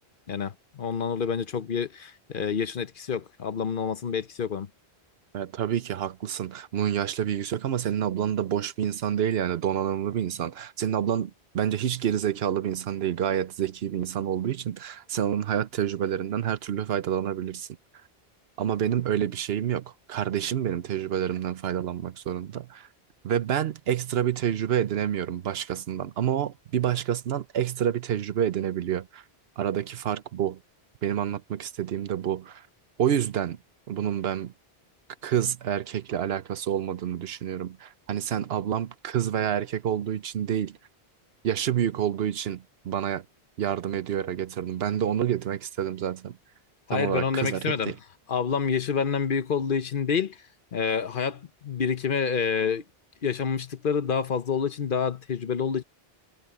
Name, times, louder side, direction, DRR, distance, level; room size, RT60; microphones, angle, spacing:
voice 1, 0.3-4.7 46.9-47.9 48.3-50.4 50.7-52.8 53.2-55.8, left 6 dB, 55° left, 1.0 m, -28 dB
voice 2, 5.3-17.7 18.6-22.9 23.2-29.2 29.6-30.6 31.0-32.6 33.0-33.6 33.9-34.5 35.2-40.8 41.4-43.2 43.6-46.4 46.9-48.0, right 10 dB, 75° right, 0.9 m, -28 dB
omnidirectional pair, 1.0 m